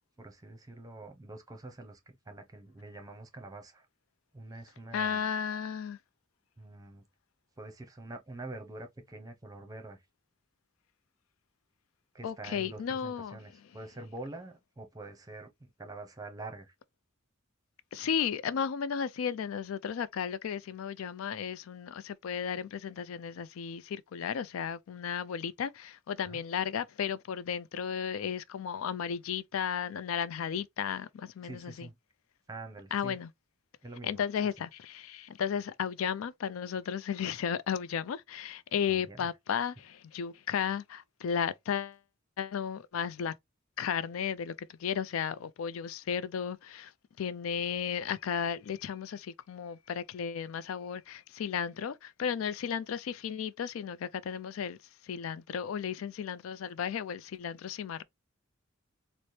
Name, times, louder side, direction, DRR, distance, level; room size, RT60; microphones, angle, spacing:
voice 1, 0.2-2.0 2.3-3.9 4.3-5.2 6.6-7.0 7.6-10.0 12.1-16.7 26.2-26.4 31.4-32.0 32.5-33.2 33.8-34.2 38.9-39.3, right 2 dB, 20° right, 0.7 m, -45 dB
voice 2, 4.9-6.0 12.2-13.4 17.9-31.9 32.9-33.3 34.0-42.0 42.4-43.3 43.8-46.9 47.2-54.8 55.0-58.0, left 7 dB, 85° left, 0.4 m, -34 dB
4.2 x 2.1 x 3.1 m
head